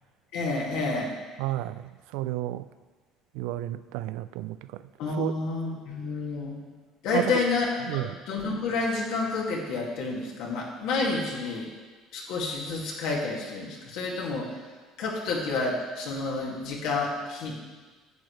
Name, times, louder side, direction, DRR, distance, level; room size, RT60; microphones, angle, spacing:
voice 1, 0.3-1.1 5.0-6.6 7.0-11.7 12.1-14.6 15.0-17.5, left 3 dB, 75° left, -2 dB, 2.1 m, -29 dB
voice 2, 1.4-2.7 3.3-4.9 5.2-5.4 7.1-7.4 7.9-8.1, right 15 dB, 90° right, 14 dB, 0.3 m, -31 dB
10.5 x 8.3 x 3.2 m, 1.4 s
cardioid pair, 145°, 0 cm